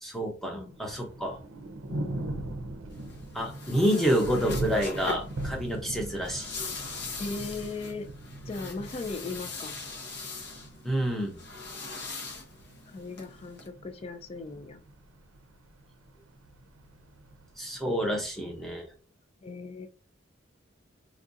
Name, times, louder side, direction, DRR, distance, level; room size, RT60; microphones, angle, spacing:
voice 1, 0.0-1.4 3.3-6.5 10.8-11.3 17.6-18.9, equal, ahead, 0 dB, 0.8 m, -28 dB
Thunder, 0.7-18.7, right 1 dB, 80° right, 0.5 m, -41 dB
voice 2, 1.9-2.4 6.0-6.1 7.2-8.1 8.4-9.8 12.9-14.8 19.4-19.9, left 3 dB, 30° left, 7 dB, 0.3 m, -38 dB
sound 1, 2.9-13.7, left 4 dB, 55° left, 0.7 m, -41 dB
4.5 x 2.4 x 2.6 m, 0.34 s
head